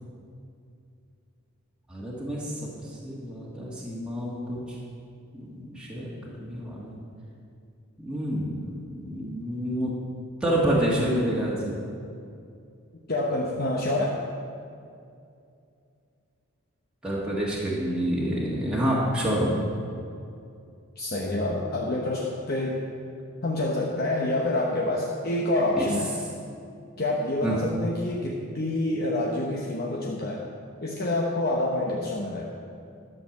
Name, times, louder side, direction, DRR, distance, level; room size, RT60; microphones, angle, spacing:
voice 1, 1.9-2.5 3.0-4.6 5.3-6.9 8.0-10.0 10.4-11.7 17.0-19.5 25.7-25.9 27.4-27.6, right 1 dB, 5° right, -6 dB, 1.7 m, -28 dB
voice 2, 13.1-14.2 21.0-22.9 23.4-26.1 27.0-30.4 30.8-32.5, left 1 dB, 45° left, -2 dB, 1.0 m, -27 dB
11.5 x 6.6 x 7.3 m, 2.5 s
head